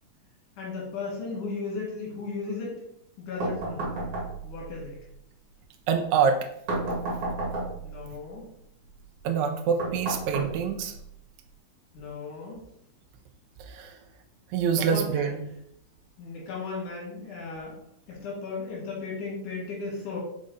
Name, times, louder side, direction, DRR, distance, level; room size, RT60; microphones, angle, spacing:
voice 1, 0.6-2.8 3.2-3.8 4.4-5.0 7.8-8.5 11.9-12.6 14.7-15.3 16.2-17.8 18.1-20.2, left 4 dB, 70° left, -3 dB, 3.3 m, -35 dB
sound 1, 3.4-4.7 6.7-8.0 9.8-11.0, right 2 dB, 55° right, 2.2 m, -31 dB
voice 2, 5.9-6.4 9.2-10.9 13.6-14.0 14.5-15.4, right 6 dB, 80° right, 4 dB, 1.7 m, -25 dB
5.4 x 4.9 x 3.9 m, 0.74 s
omnidirectional pair, 3.7 m